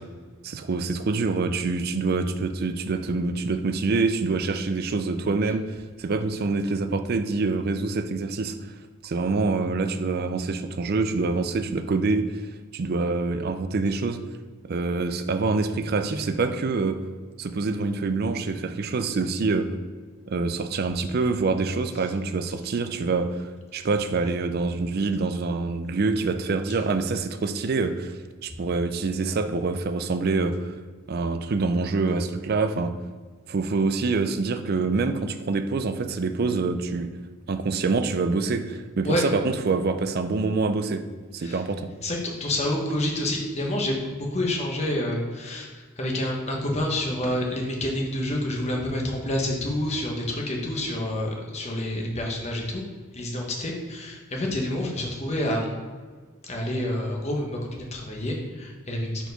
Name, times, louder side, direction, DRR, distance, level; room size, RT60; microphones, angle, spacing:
voice 1, 0.4-5.7 6.0-8.5 9.0-12.3 12.7-14.2 14.6-17.0 17.4-19.7 20.3-28.1 28.4-30.7 31.1-33.0 33.5-37.1 37.5-41.1 41.3-41.9, right 3 dB, 45° right, 9 dB, 0.4 m, -26 dB
voice 2, 42.0-52.8 53.1-55.7 56.4-59.3, left 1 dB, 30° left, 0 dB, 1.0 m, -28 dB
4.5 x 4.4 x 5.2 m, 1.5 s
head